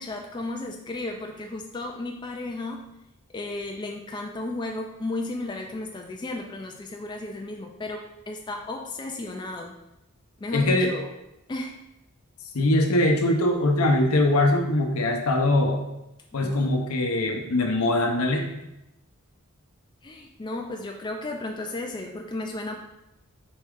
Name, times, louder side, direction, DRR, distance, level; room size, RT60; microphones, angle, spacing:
voice 1, 0.0-2.8 3.3-9.7 10.4-11.1 11.5-11.8 16.3-16.7 20.0-22.7, left 2 dB, 20° left, 2 dB, 0.3 m, -34 dB
voice 2, 10.5-10.9 12.5-15.8 16.3-18.5, left 1 dB, 75° left, 3 dB, 0.7 m, -22 dB
4.2 x 3.5 x 3.6 m, 0.89 s
head